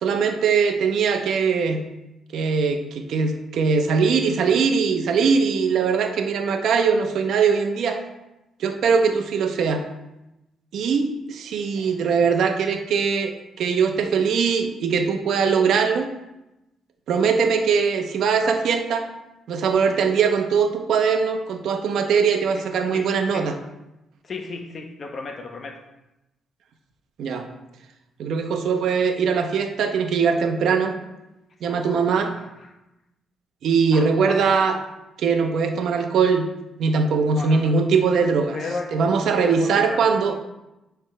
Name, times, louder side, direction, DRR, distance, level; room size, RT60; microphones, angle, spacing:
voice 1, 0.0-1.8 2.3-8.0 8.6-9.8 10.7-13.3 13.6-16.1 17.1-19.1 19.5-23.6 27.2-27.5 28.2-30.9 31.6-32.4 33.6-34.8 35.2-36.5 36.8-38.6 38.9-40.4, right 5 dB, 70° right, 5 dB, 0.9 m, -21 dB
voice 2, 22.9-23.5 24.2-25.8 31.6-32.1 33.9-34.4 37.3-37.7 38.2-38.3 38.5-40.0, left 3 dB, 45° left, 5 dB, 1.0 m, -35 dB
9.8 x 3.5 x 4.5 m, 0.95 s
cardioid pair, 90°, 0 cm